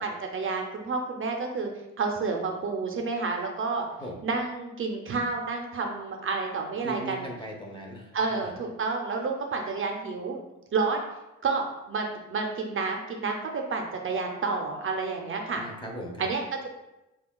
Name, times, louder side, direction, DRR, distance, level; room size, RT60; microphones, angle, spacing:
voice 1, 0.0-1.7 2.0-3.8 4.2-7.3 8.1-10.4 10.7-11.0 11.4-15.6 16.2-16.7, right 4 dB, 45° right, 2 dB, 0.6 m, -30 dB
voice 2, 6.8-8.5 15.5-16.3, right 1 dB, 15° left, 0 dB, 0.8 m, -39 dB
5.6 x 2.3 x 2.3 m, 0.97 s
cardioid pair, 90°, 30 cm